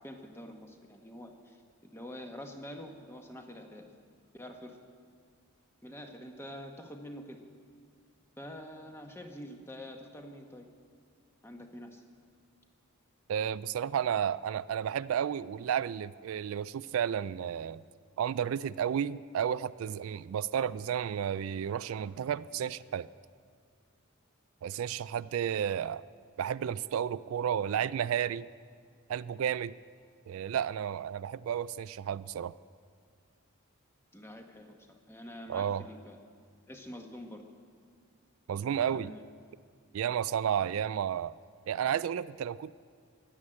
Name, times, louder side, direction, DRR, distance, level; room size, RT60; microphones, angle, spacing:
voice 1, 0.0-3.9 4.3-4.8 5.8-7.4 8.4-10.7 11.4-12.0 34.1-36.2 36.7-37.4 38.9-39.2, equal, 10° left, 4 dB, 1.1 m, -46 dB
voice 2, 13.3-17.8 18.2-23.1 24.6-26.0 26.4-28.5 29.1-29.7 30.3-32.5 35.5-35.8 38.5-39.1 39.9-41.4 41.7-42.7, right 9 dB, 70° right, 16 dB, 0.3 m, -32 dB
14.5 x 11.5 x 8.7 m, 2.1 s
head